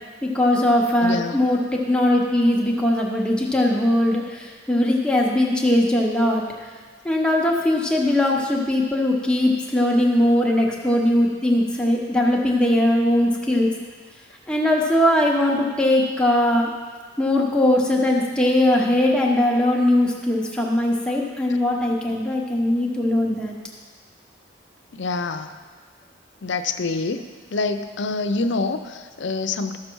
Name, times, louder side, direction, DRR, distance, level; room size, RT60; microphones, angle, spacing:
voice 1, 0.2-6.4 7.0-13.7 14.5-16.7 17.2-23.5, left 1 dB, 5° left, -2 dB, 1.0 m, -20 dB
voice 2, 1.0-1.3 24.9-25.6 26.4-27.2 27.5-29.8, left 3 dB, 65° left, 8 dB, 0.6 m, -26 dB
13.5 x 6.7 x 4.6 m, 1.5 s
head